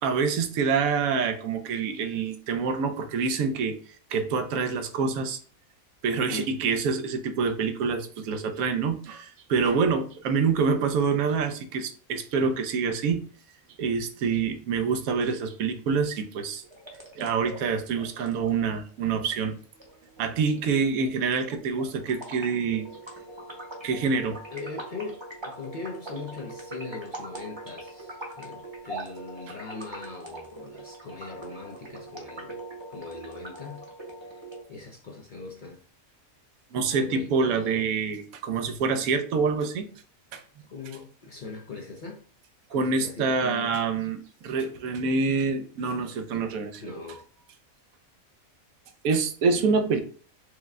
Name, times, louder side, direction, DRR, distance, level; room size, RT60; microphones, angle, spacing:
voice 1, 0.0-3.8 4.1-5.4 6.0-13.2 13.8-16.6 17.2-19.6 20.2-22.9 23.8-24.4 36.7-39.9 40.3-40.4 42.7-47.0 49.0-50.0, right 5 dB, 80° right, 8 dB, 1.0 m, -26 dB
voice 2, 6.2-6.5 24.5-32.6 32.9-33.8 34.2-34.4 34.7-35.8 36.9-37.8 40.7-42.2 42.7-43.7 46.8-47.2, left 3 dB, 50° left, 0 dB, 0.6 m, -40 dB
sound 1, 16.6-34.6, right 1 dB, 25° right, 0.8 m, -42 dB
4.8 x 2.2 x 3.6 m, 0.42 s
omnidirectional pair, 1.5 m